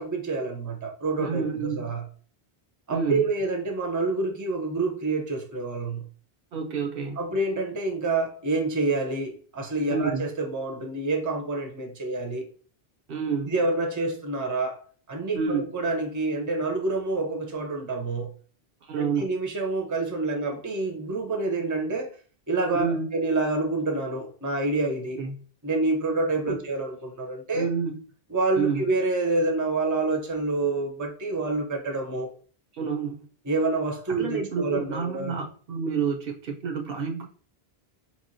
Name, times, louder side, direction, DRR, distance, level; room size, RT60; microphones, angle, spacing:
voice 1, 0.0-2.0 2.9-6.1 7.2-12.5 13.5-14.8 15.1-18.3 19.0-22.1 22.5-25.2 25.6-27.7 28.3-32.3 33.4-35.3, right 3 dB, 20° right, 3 dB, 0.6 m, -27 dB
voice 2, 1.2-1.9 2.9-3.2 6.5-7.2 9.9-10.2 13.1-13.5 15.4-15.6 18.8-19.3 22.7-23.1 25.2-25.3 26.5-26.6 27.5-28.0 28.6-28.8 32.7-33.3 34.2-37.3, right 5 dB, 65° right, 3 dB, 0.8 m, -29 dB
4.5 x 3.0 x 2.6 m, 0.43 s
omnidirectional pair, 1.1 m